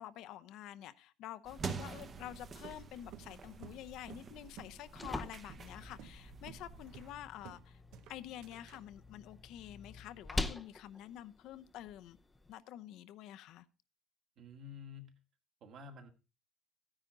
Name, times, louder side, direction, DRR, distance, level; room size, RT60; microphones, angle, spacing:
voice 1, 0.0-7.8 8.1-12.2 12.5-13.7, left 12 dB, 65° left, 0.7 m, -48 dB
sound 1, 1.4-7.1, right 5 dB, 25° right, 0.9 m, -47 dB
sound 2, 2.6-4.8 5.0-5.2 5.5-5.7 6.0-6.2 6.5-6.7 6.9-7.6 7.9-8.8, right 10 dB, 70° right, 1.0 m, -53 dB
sound 3, 4.6-12.5, left 2 dB, 10° left, 0.6 m, -45 dB
voice 2, 14.4-15.1 15.6-16.1, left 4 dB, 50° right, 2.0 m, -50 dB
14.0 x 9.9 x 3.9 m
cardioid pair, 175°, 0 cm